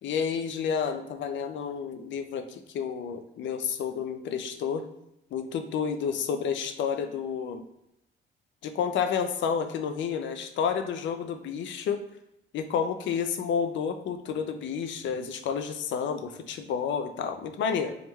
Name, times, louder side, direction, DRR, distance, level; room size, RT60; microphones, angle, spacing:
voice 1, 0.0-4.8 5.3-7.6 8.6-12.0 12.5-18.0, left 7 dB, 70° left, 7 dB, 0.5 m, -30 dB
3.6 x 3.1 x 3.0 m, 0.83 s
cardioid pair, 90°, 20 cm